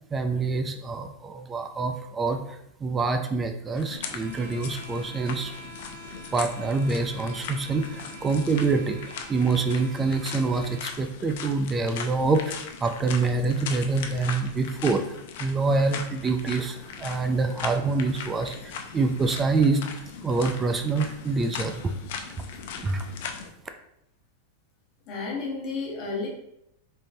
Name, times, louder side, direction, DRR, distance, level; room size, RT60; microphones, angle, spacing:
voice 1, 0.1-5.5 6.3-9.0 9.3-19.8 20.2-21.9 22.8-23.1, right 3 dB, 15° right, 7 dB, 0.3 m, -26 dB
sound 1, 3.8-23.5, left 6 dB, 65° left, 0.5 m, -39 dB
sound 2, 4.0-11.0, right 2 dB, 60° right, 0.9 m, -46 dB
voice 2, 25.1-26.3, left 4 dB, 40° left, -3 dB, 1.3 m, -31 dB
3.9 x 3.6 x 2.7 m, 0.77 s
supercardioid pair, 150°, 0 cm